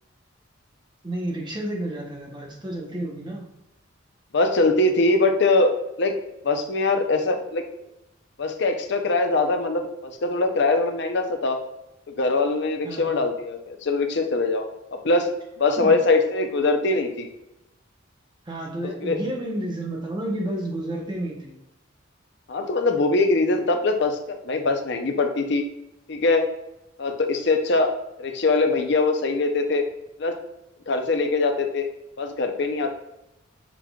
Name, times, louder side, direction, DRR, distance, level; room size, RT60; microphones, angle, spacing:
voice 1, 1.0-3.5 12.8-13.2 15.8-16.0 18.5-21.6, right 1 dB, 25° right, 0 dB, 0.8 m, -31 dB
voice 2, 4.3-6.1 6.4-7.6 8.4-11.6 12.1-14.7 14.9-15.3 15.6-17.3 18.8-19.2 22.5-25.6 26.1-26.5 27.0-27.9 28.2-29.8 30.2-30.4 30.9-31.9 32.2-32.9, left 3 dB, 60° left, 5 dB, 0.6 m, -22 dB
6.0 x 3.6 x 2.3 m, 0.90 s
head